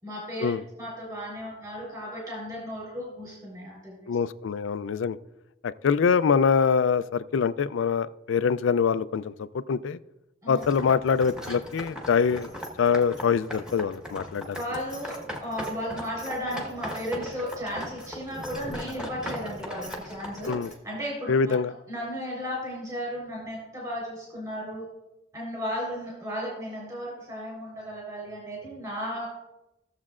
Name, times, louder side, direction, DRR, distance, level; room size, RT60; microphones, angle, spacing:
voice 1, 0.0-0.5 0.8-4.1 10.4-10.6 14.5-20.5 20.8-21.5 21.9-24.9 25.3-29.3, equal, 20° right, -5 dB, 3.8 m, -35 dB
voice 2, 4.1-5.2 5.8-10.0 10.5-12.5 12.8-14.6 20.5-20.7 21.3-21.7, left 6 dB, 80° left, 15 dB, 0.4 m, -24 dB
sound 1, 10.6-20.7, equal, 5° right, 1.3 m, -39 dB
16.5 x 7.3 x 2.5 m, 0.94 s
head